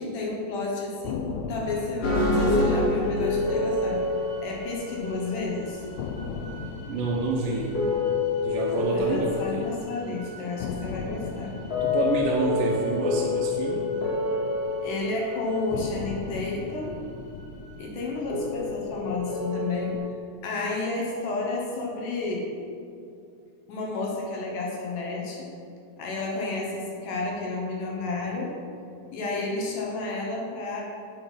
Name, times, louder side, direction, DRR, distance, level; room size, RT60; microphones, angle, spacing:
voice 1, 0.0-4.0 4.4-5.8 8.9-11.6 14.8-17.0 17.8-20.0 20.4-22.5 23.7-25.5 26.0-28.6 29.1-30.8, left 3 dB, 70° left, -2 dB, 2.8 m, -31 dB
sound 1, 1.0-5.1 5.4-5.5 6.0-10.1 10.6-15.0 15.7-20.1, left 5 dB, 90° left, 1.5 m, -39 dB
sound 2, 2.0-7.1 7.5-7.6 7.7-10.4 10.7-10.8 11.6-15.8 18.3-20.0, left 2 dB, 50° left, 3.2 m, -27 dB
voice 2, 6.9-7.8 8.4-9.7 11.8-13.9, right 3 dB, 80° right, -3 dB, 2.5 m, -28 dB
8.2 x 7.0 x 5.6 m, 2.5 s
omnidirectional pair, 3.9 m